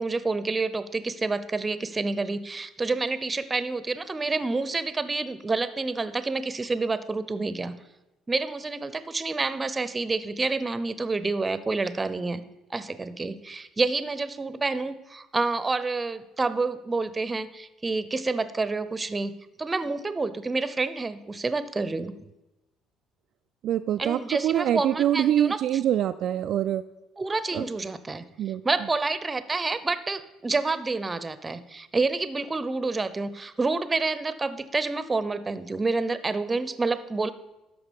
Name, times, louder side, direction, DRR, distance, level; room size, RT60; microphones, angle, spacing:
voice 1, 0.0-7.7 8.3-12.4 12.7-19.3 19.6-22.1 24.0-25.6 27.2-28.2 28.6-37.3, right 3 dB, 25° right, 14 dB, 0.7 m, -28 dB
voice 2, 23.6-26.8 27.5-27.7 28.4-28.6, right 11 dB, 60° right, 8 dB, 0.3 m, -25 dB
13.0 x 5.0 x 5.3 m, 0.99 s
hypercardioid pair, 55°, 0 cm